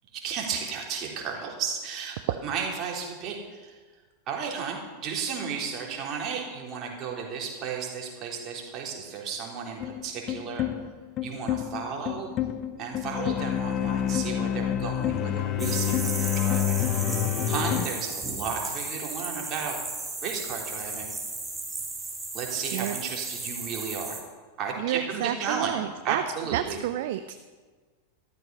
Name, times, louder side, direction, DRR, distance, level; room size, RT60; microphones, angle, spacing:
voice 1, 0.1-3.8 4.3-10.6 11.2-12.3 12.8-17.1 17.5-19.8 20.2-21.1 22.3-24.2 24.6-25.8 26.0-26.8, right 6 dB, 35° right, 0 dB, 3.6 m, -33 dB
sound 1, 9.8-17.9, left 11 dB, 35° left, 0.8 m, -28 dB
sound 2, 15.6-24.2, right 3 dB, 10° right, 2.5 m, -35 dB
voice 2, 24.8-26.2 26.5-27.3, right 12 dB, 50° right, 11 dB, 0.6 m, -30 dB
13.5 x 13.5 x 5.5 m, 1.4 s
figure-of-eight pair, 90°, 0 cm